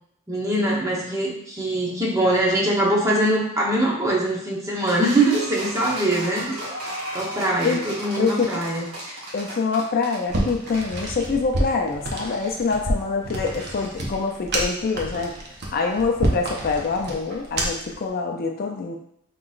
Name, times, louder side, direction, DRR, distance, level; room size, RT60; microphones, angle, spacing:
voice 1, 0.3-6.6 7.1-9.2, right 1 dB, 15° right, -3 dB, 0.9 m, -23 dB
sound 1, 4.9-11.1, equal, 85° right, 1.1 m, -34 dB
voice 2, 8.2-8.5 9.3-15.4 15.7-19.0, left 4 dB, 45° left, 2 dB, 0.4 m, -25 dB
sound 2, 10.3-17.9, right 1 dB, 50° right, 0.8 m, -28 dB
5.9 x 3.0 x 2.5 m, 0.71 s
head